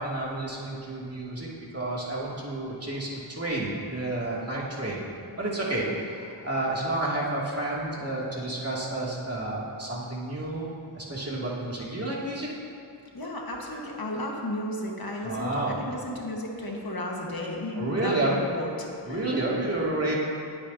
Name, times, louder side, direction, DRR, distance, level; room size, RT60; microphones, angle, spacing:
voice 1, 0.0-1.5 1.7-5.0 5.4-10.7 10.9-12.5 15.2-15.8 17.7-18.3 19.1-20.1, right 2 dB, 30° right, -5 dB, 2.5 m, -30 dB
voice 2, 13.1-19.3, left 1 dB, 50° left, -1 dB, 1.6 m, -34 dB
19.5 x 8.5 x 2.8 m, 2.5 s
wide cardioid pair, 75°, 45 cm